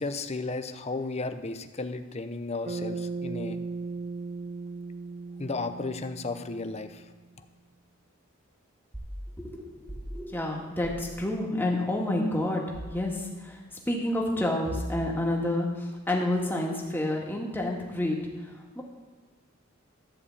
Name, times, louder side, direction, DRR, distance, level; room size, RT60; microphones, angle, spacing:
voice 1, 0.0-3.6 5.4-7.0, left 3 dB, 30° left, 9 dB, 0.7 m, -34 dB
Bass guitar, 2.7-7.1, right 4 dB, 35° right, 0.4 m, -37 dB
sound 1, 8.9-9.2 9.9-10.1 10.8-11.1 12.7-13.0 14.6-15.2, equal, 15° right, 2.0 m, -37 dB
voice 2, 9.4-13.6 13.9-18.2 18.8-18.9, left 1 dB, 10° left, -1 dB, 1.9 m, -29 dB
14.0 x 5.0 x 8.5 m, 1.4 s
head